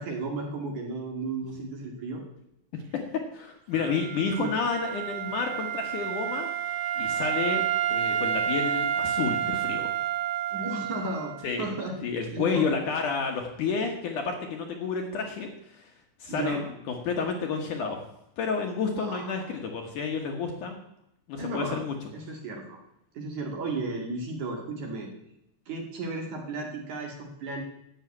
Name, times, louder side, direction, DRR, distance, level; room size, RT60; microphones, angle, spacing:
voice 1, 0.0-2.2 4.4-4.5 10.5-11.3 11.6-12.0 12.3-12.7 16.3-16.7 18.8-19.7 21.4-21.8 22.1-22.8 23.1-25.1 25.7-27.6, right 3 dB, 50° right, 1 dB, 3.2 m, -34 dB
voice 2, 3.3-6.5 7.0-7.6 7.9-9.9 11.4-11.7 12.0-15.9 16.2-16.6 16.9-18.0 18.4-20.7 21.3-21.9, left 5 dB, 60° left, 3 dB, 2.4 m, -30 dB
Wind instrument woodwind instrument, 3.7-11.5, right 10 dB, 70° right, 1.8 m, -30 dB
12.5 x 8.2 x 8.5 m, 0.81 s
omnidirectional pair, 4.7 m